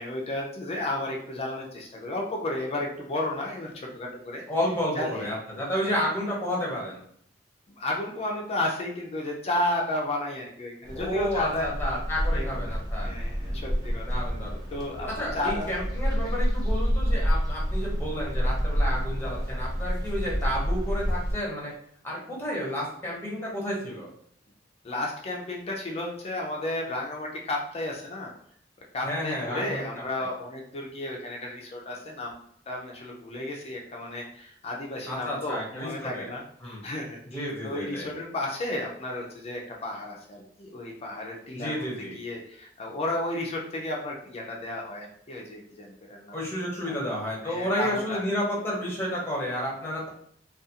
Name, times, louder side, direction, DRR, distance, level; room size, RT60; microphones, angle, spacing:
voice 1, 0.0-4.4 4.9-5.3 5.8-6.0 7.7-11.7 12.3-12.8 13.0-14.2 14.7-15.8 16.2-16.4 24.8-28.3 28.9-32.4 32.7-46.3 46.9-47.0 47.4-48.2, left 1 dB, 35° left, -1 dB, 0.4 m, -33 dB
voice 2, 4.5-7.0 10.9-13.1 14.0-14.6 15.1-21.7 22.0-24.1 29.0-29.9 30.2-30.3 35.1-36.3 36.6-36.8 37.3-38.1 41.5-42.2 46.3-50.1, equal, 10° left, -4 dB, 0.8 m, -31 dB
sound 1, 10.8-21.3, equal, 20° right, 0.5 m, -28 dB
2.4 x 2.3 x 2.7 m, 0.64 s
head